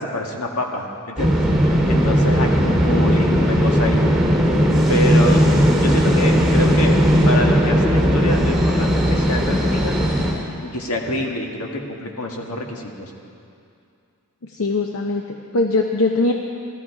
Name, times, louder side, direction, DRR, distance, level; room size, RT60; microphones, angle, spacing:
voice 1, 0.0-1.4 1.9-4.0 4.9-9.9 10.6-13.1, left 1 dB, 85° left, 1 dB, 1.7 m, -26 dB
sound 1, 1.2-10.3, equal, 5° right, 2.4 m, -17 dB
voice 2, 14.4-16.3, left 2 dB, 70° left, 2 dB, 0.7 m, -21 dB
16.0 x 14.0 x 4.8 m, 2.5 s
head